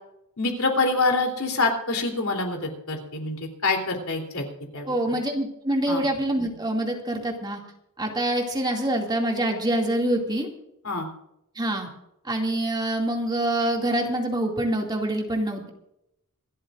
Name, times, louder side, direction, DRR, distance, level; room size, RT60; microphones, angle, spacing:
voice 1, 0.4-4.4 4.7-4.9 5.9-6.0 10.8-11.1, left 3 dB, 70° left, 2 dB, 3.5 m, -26 dB
voice 2, 4.9-7.6 8.0-10.5 11.6-11.9 12.2-15.7, right 1 dB, 20° right, 0 dB, 2.4 m, -25 dB
26.5 x 13.0 x 2.6 m, 0.81 s
head